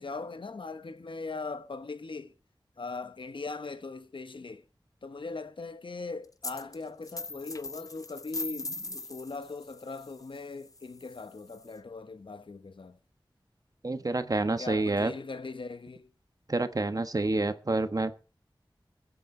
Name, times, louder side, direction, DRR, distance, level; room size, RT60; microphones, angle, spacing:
voice 1, 0.0-2.3 2.8-4.6 5.0-13.0 14.6-16.1, left 3 dB, 70° left, 1.0 m, -40 dB
sound 1, 6.4-6.8 7.0-11.7, left 2 dB, 40° left, 0.7 m, -41 dB
voice 2, 13.8-15.1 16.5-18.1, right 2 dB, 45° right, 1.2 m, -28 dB
21.5 x 8.3 x 4.4 m
wide cardioid pair, 70°, 9 cm